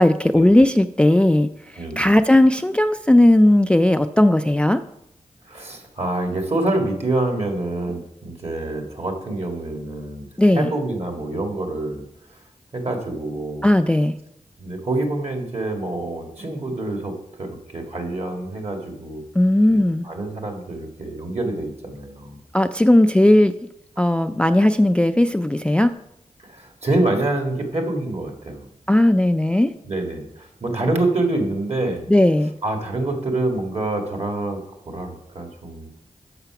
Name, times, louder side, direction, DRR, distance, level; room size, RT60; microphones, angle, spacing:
voice 1, 0.0-1.5 2.0-4.8 10.4-10.7 13.6-14.1 19.4-20.1 22.5-23.5 24.0-25.9 28.9-29.7 32.1-32.5, left 1 dB, 10° left, 10 dB, 0.3 m, -16 dB
voice 2, 1.8-2.1 5.5-10.3 10.5-12.0 12.7-13.7 14.6-19.2 19.7-22.4 26.4-28.7 29.8-32.0 32.6-35.9, right 2 dB, 50° right, 3 dB, 1.8 m, -26 dB
6.8 x 5.7 x 5.8 m, 0.82 s
cardioid pair, 45°, 14 cm